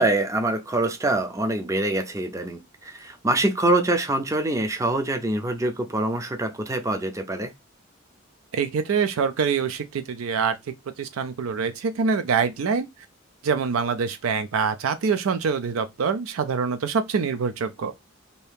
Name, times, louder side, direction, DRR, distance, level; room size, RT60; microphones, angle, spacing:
voice 1, 0.0-7.5, right 2 dB, 15° right, 0.5 m, -25 dB
voice 2, 8.5-10.5 11.0-12.9 13.4-17.9, right 5 dB, 75° right, 0.4 m, -25 dB
2.7 x 2.7 x 3.3 m
head